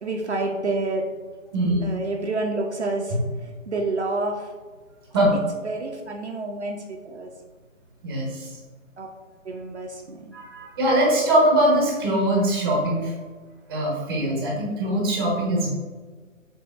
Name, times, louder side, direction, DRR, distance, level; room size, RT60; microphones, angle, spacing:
voice 1, 0.0-1.0 1.8-4.5 5.6-7.3 9.0-9.1 9.4-10.3, right 2 dB, 55° right, 1 dB, 0.6 m, -29 dB
voice 2, 8.0-8.5 10.3-13.1 13.7-15.7, right 1 dB, 20° right, -3 dB, 0.8 m, -22 dB
6.2 x 3.4 x 2.4 m, 1.4 s
figure-of-eight pair, 140°, 41 cm